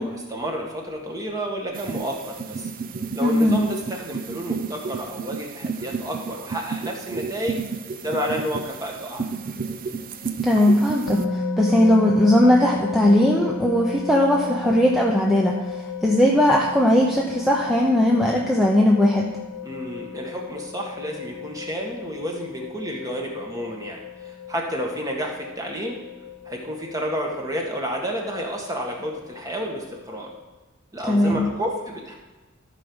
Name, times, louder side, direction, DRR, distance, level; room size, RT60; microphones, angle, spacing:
voice 1, 0.0-2.7 3.1-7.6 8.0-9.2 19.6-26.0 26.4-30.3 30.9-32.1, equal, 15° right, 0 dB, 1.7 m, -30 dB
sound 1, 1.7-11.2, right 5 dB, 40° right, 0.7 m, -32 dB
voice 2, 3.2-3.6 10.4-19.3 31.1-31.5, left 1 dB, ahead, -2 dB, 0.9 m, -19 dB
sound 2, 11.1-30.4, left 4 dB, 75° left, 1.0 m, -34 dB
14.0 x 5.1 x 6.3 m, 1.2 s
head